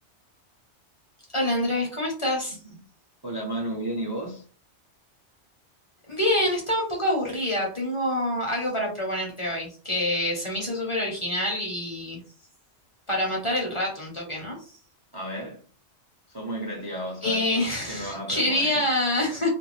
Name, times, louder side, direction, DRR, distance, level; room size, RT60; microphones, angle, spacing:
voice 1, 1.3-2.6 6.1-12.2 13.1-14.6 17.2-19.5, left 1 dB, 30° left, 0.7 m, -26 dB
voice 2, 3.2-4.4 15.1-15.6 16.3-18.8, right 1 dB, 30° right, 0.5 m, -33 dB
2.5 x 2.3 x 3.1 m
omnidirectional pair, 1.2 m